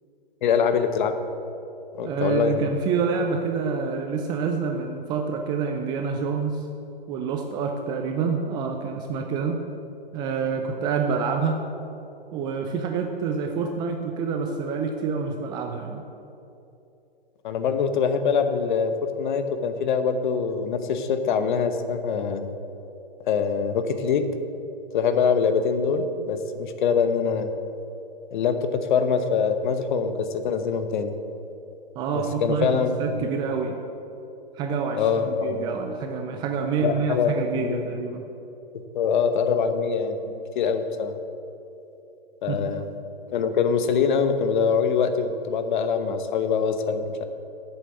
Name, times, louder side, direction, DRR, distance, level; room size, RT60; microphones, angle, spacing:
voice 1, 0.4-1.2 2.0-2.7 17.4-22.5 23.2-24.3 24.9-27.5 28.3-31.1 32.1-33.3 35.0-35.8 36.8-37.8 38.9-40.2 40.5-41.1 42.4-42.8 43.3-47.2, left 6 dB, 55° left, 9 dB, 1.0 m, -24 dB
voice 2, 2.0-6.7 7.1-9.6 10.1-11.6 12.3-16.0 32.0-33.8 34.5-38.3 40.3-40.4 42.5-42.6, right 5 dB, 15° right, 4 dB, 0.4 m, -27 dB
8.4 x 7.2 x 8.1 m, 2.9 s
hypercardioid pair, 125°, 30 cm